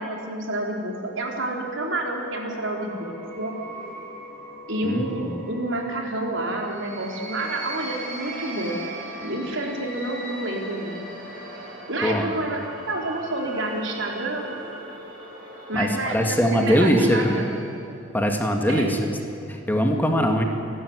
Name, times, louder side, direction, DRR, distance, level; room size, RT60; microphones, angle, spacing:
voice 1, 0.0-3.5 4.7-8.8 9.2-11.0 11.9-14.5 15.7-17.6 18.7-18.9, right 2 dB, 70° right, 1 dB, 4.2 m, -29 dB
sound 1, 1.0-17.9, right 1 dB, 45° right, 6.8 m, -39 dB
voice 2, 15.7-17.3 18.1-19.1 19.7-20.4, equal, 10° left, 3 dB, 2.1 m, -21 dB
29.5 x 13.0 x 9.7 m, 2.9 s
head